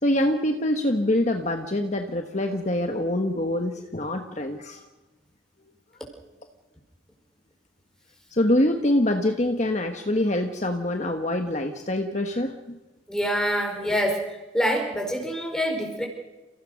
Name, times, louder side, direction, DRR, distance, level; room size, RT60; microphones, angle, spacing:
voice 1, 0.0-4.8 8.3-12.8, left 1 dB, 35° left, 4 dB, 1.3 m, -25 dB
voice 2, 13.1-14.2 14.5-16.1, equal, 5° left, 2 dB, 4.7 m, -25 dB
29.5 x 16.5 x 6.5 m, 1.1 s
head